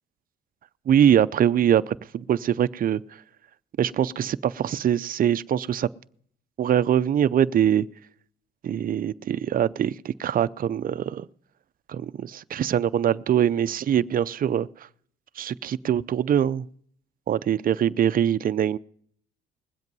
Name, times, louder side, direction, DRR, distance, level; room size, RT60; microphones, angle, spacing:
voice 1, 0.9-3.0 3.8-5.9 6.6-7.9 8.6-11.3 11.9-14.7 15.4-16.7 17.3-18.8, right 9 dB, 45° right, 0.5 m, -23 dB
20.5 x 8.0 x 5.4 m
cardioid pair, 90°, 20 cm